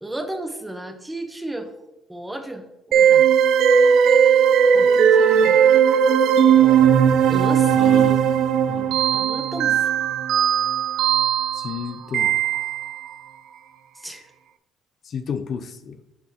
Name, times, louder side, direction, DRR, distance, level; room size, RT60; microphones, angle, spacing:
voice 1, 0.0-1.7 2.1-3.3 4.7-5.6 7.3-8.0 9.1-10.0 13.9-14.3, right 1 dB, 10° right, 6 dB, 0.9 m, -33 dB
sound 1, 2.9-13.1, right 8 dB, 75° right, 0.5 m, -17 dB
voice 2, 7.7-8.2 8.7-9.0 11.5-12.4 15.0-16.0, left 6 dB, 50° left, 10 dB, 0.5 m, -32 dB
10.5 x 4.0 x 3.6 m, 0.95 s
cardioid pair, 110°, 0 cm